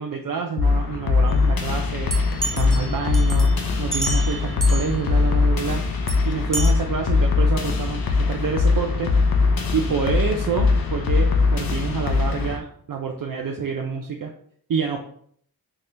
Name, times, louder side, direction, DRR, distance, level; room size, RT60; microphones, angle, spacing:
voice 1, 0.0-2.1 2.4-3.5 3.8-5.8 6.2-9.1 9.7-14.3 14.7-15.0, right 6 dB, 60° right, 2 dB, 0.5 m, -27 dB
sound 1, 0.6-12.6, left 4 dB, 65° left, 0.6 m, -21 dB
sound 2, 2.1-5.0 6.1-6.2 6.5-6.7, right 2 dB, ahead, 0.6 m, -30 dB
4.1 x 2.2 x 3.2 m, 0.62 s
wide cardioid pair, 55°, 39 cm